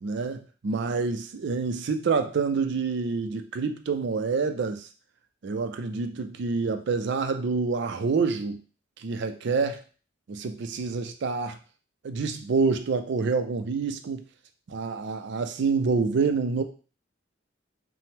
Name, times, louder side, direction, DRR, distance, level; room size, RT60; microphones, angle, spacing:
voice 1, 0.0-4.9 5.4-8.6 9.0-9.8 10.3-11.6 12.0-14.2 14.7-16.6, right 4 dB, 60° right, 8 dB, 0.4 m, -27 dB
5.4 x 2.0 x 3.5 m, 0.37 s
head